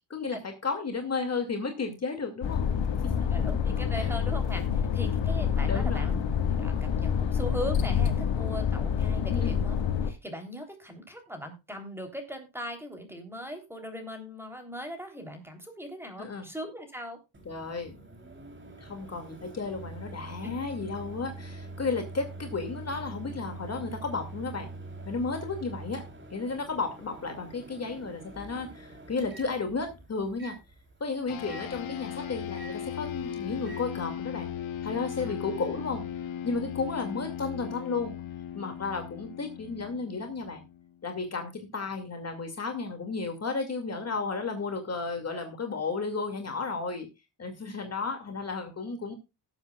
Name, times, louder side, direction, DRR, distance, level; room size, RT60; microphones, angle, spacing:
voice 1, 0.1-2.7 3.0-3.4 3.9-4.1 5.7-6.1 9.3-9.6 16.2-16.5 17.5-18.0 18.8-24.7 25.0-26.0 26.3-30.6 31.0-34.5 34.8-36.0 36.4-38.1 38.5-40.6 41.0-47.1 47.4-49.1, left 4 dB, 35° left, 5 dB, 2.4 m, -33 dB
sound 1, 2.4-10.1, left 7 dB, 70° left, 1.9 m, -27 dB
voice 2, 3.2-6.2 6.5-9.8 10.0-17.2 20.4-20.5 35.2-35.4, equal, 5° right, 5 dB, 3.4 m, -39 dB
Microwave oven, 17.3-33.8, right 2 dB, 25° right, 3.3 m, -45 dB
sound 2, 31.3-41.0, left 9 dB, 90° left, 2.5 m, -37 dB
18.5 x 8.1 x 2.4 m, 0.26 s
cardioid pair, 125°, 46 cm